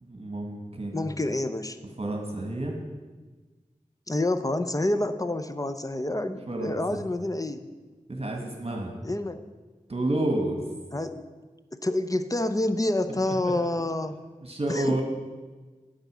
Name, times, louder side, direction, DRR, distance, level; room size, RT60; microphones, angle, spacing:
voice 1, 0.0-1.1 2.0-2.8 6.5-7.0 8.1-8.9 9.9-10.6 13.3-13.5 14.4-15.0, right 1 dB, 45° right, 1 dB, 1.5 m, -30 dB
voice 2, 0.9-1.8 4.1-7.7 9.0-9.4 10.9-11.2 11.7-14.2 14.7-15.0, left 1 dB, 25° left, 9 dB, 0.7 m, -28 dB
9.2 x 8.0 x 6.1 m, 1.3 s
wide cardioid pair, 40°, 14 cm